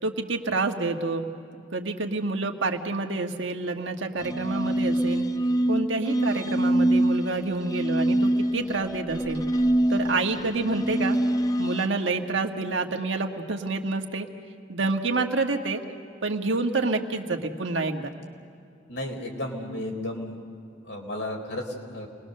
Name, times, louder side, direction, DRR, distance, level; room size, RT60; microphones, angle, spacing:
voice 1, 0.0-1.3 1.7-5.2 5.7-9.4 9.9-11.2 11.6-14.3 14.7-15.8 16.2-18.1, right 3 dB, 85° right, 3 dB, 1.6 m, -28 dB
sound 1, 4.2-11.9, right 1 dB, 20° left, 0.5 m, -25 dB
voice 2, 18.9-20.4 20.8-22.1, left 1 dB, 80° left, 1 dB, 4.0 m, -33 dB
28.5 x 21.0 x 6.6 m, 2.5 s
head